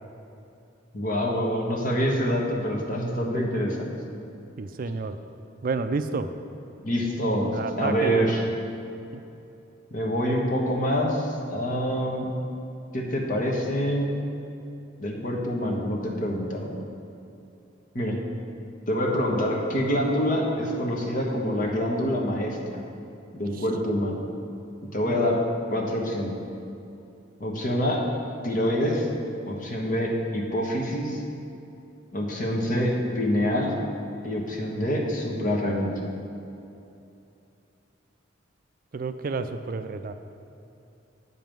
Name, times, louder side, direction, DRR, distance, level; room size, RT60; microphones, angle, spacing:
voice 1, 0.9-3.9 6.8-8.4 9.9-12.3 12.9-14.2 15.0-16.7 17.9-18.2 18.9-22.8 23.3-24.2 24.9-25.4 25.7-26.4 27.4-28.0 28.4-29.1 29.5-31.2 32.1-33.8 34.2-36.0, equal, 40° left, -1 dB, 1.2 m, -26 dB
voice 2, 4.6-5.2 5.6-6.3 7.5-8.5 16.7-16.9 23.5-23.6 25.1-25.4 38.9-40.1, right 4 dB, 45° right, 10 dB, 0.4 m, -30 dB
8.5 x 5.3 x 7.5 m, 2.8 s
head